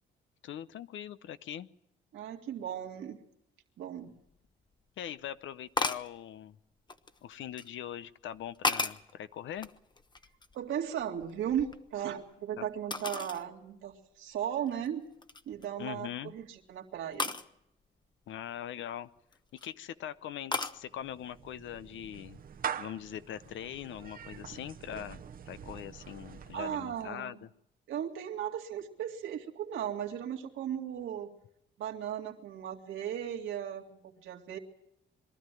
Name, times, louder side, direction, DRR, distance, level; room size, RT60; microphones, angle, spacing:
voice 1, 0.4-1.7 5.0-6.6 7.2-9.7 12.6-12.7 15.8-16.3 18.3-19.1 19.5-22.4 22.7-27.5, left 10 dB, 75° left, 14 dB, 0.8 m, -42 dB
voice 2, 2.1-3.2 3.8-4.1 10.5-15.1 15.5-17.3 26.5-27.3 27.9-31.3 31.8-34.6, right 9 dB, 80° right, 1 dB, 2.3 m, -36 dB
sound 1, 4.3-4.4 5.8-6.1 6.9-7.7 8.3-9.1 9.6-10.6 11.0-12.3 12.9-13.5 13.9-14.0 14.7-14.9 15.2-15.6 17.2-17.5 19.2-19.7 20.5-20.8, left 3 dB, 20° left, 1.0 m, -34 dB
Clapping / Meow, 20.7-27.2, right 8 dB, 45° right, 1.0 m, -44 dB
23.0 x 13.0 x 9.2 m, 0.80 s
cardioid pair, 90°, 20 cm